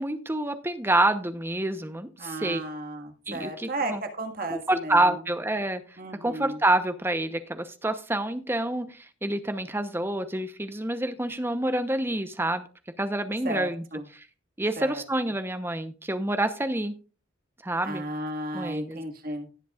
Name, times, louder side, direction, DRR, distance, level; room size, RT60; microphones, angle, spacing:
voice 1, 0.0-2.6 3.3-4.0 4.5-5.8 6.2-12.6 13.0-13.8 14.1-14.3 14.6-17.0 17.6-18.0 18.5-19.0, right 1 dB, 10° right, 9 dB, 0.8 m, -27 dB
voice 2, 2.2-5.2 6.0-6.6 13.4-14.1 14.8-15.0 17.8-19.5, right 1 dB, 50° right, 4 dB, 1.8 m, -34 dB
17.5 x 7.8 x 2.4 m, 0.34 s
head